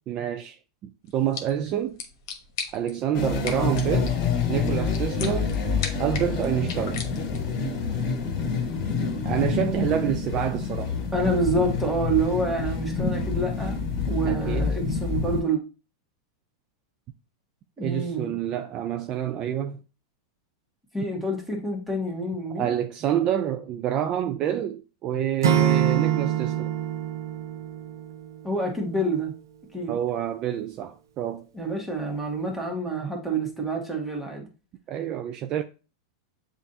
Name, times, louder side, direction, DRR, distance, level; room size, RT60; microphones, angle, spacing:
voice 1, 0.1-0.6 0.8-2.0 2.7-4.2 4.5-5.6 6.0-7.0 9.2-10.9 14.2-14.7 17.8-19.8 22.6-26.7 29.9-31.5 34.9-35.6, right 10 dB, 35° right, 0.4 m, -27 dB
sound 1, 1.1-7.6, left 6 dB, 65° left, 1.1 m, -39 dB
sound 2, 3.1-15.4, left 5 dB, 40° left, 1.8 m, -27 dB
voice 2, 11.1-13.8 14.1-15.6 17.8-18.4 20.9-22.7 28.4-29.4 29.7-30.0 31.5-34.5, right 2 dB, 5° right, 1.4 m, -27 dB
Acoustic guitar / Strum, 25.4-28.5, right 9 dB, 85° right, 0.6 m, -25 dB
7.1 x 2.5 x 2.7 m
hypercardioid pair, 130°, 2 cm